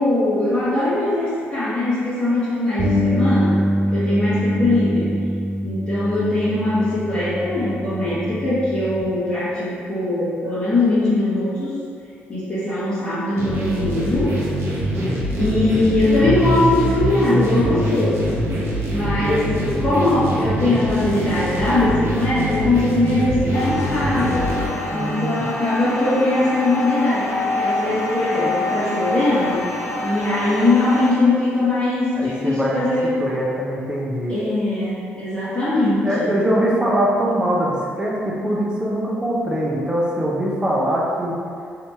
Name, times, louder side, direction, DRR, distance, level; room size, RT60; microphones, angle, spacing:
voice 1, 0.0-3.6 3.9-5.1 5.6-11.7 12.3-14.4 15.3-18.3 18.9-24.5 24.9-29.6 30.0-33.1 34.3-36.3, left 2 dB, 25° left, -13 dB, 1.3 m, -21 dB
Bass guitar, 2.8-9.0, equal, 85° right, 0.8 m, -23 dB
sound 1, 13.4-24.7, right 1 dB, 50° right, 0.9 m, -24 dB
voice 2, 19.0-19.8 24.9-25.4 32.2-32.9 33.2-34.3 36.0-41.4, equal, 15° right, -4 dB, 0.8 m, -22 dB
sound 2, 23.5-31.1, left 2 dB, 55° left, 0.5 m, -26 dB
2.9 x 2.8 x 3.5 m, 2.3 s
hypercardioid pair, 45°, 6 cm